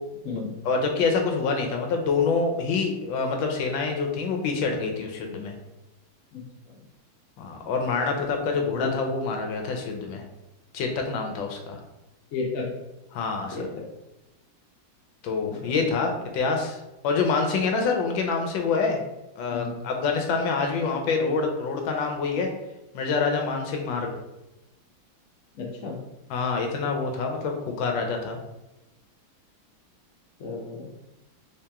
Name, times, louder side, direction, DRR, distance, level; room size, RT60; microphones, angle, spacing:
voice 1, 0.4-5.5 7.4-10.2 10.7-11.8 13.1-13.6 15.2-16.8 17.0-19.0 19.4-22.5 22.9-24.1 26.3-28.4, left 4 dB, 80° left, 3 dB, 1.3 m, -26 dB
voice 2, 8.6-8.9 12.3-12.7 13.5-13.8 15.5-15.8 19.5-19.8 25.6-25.9 30.4-30.9, left 4 dB, 60° left, -1 dB, 0.9 m, -33 dB
3.4 x 2.9 x 3.4 m, 0.98 s
omnidirectional pair, 2.1 m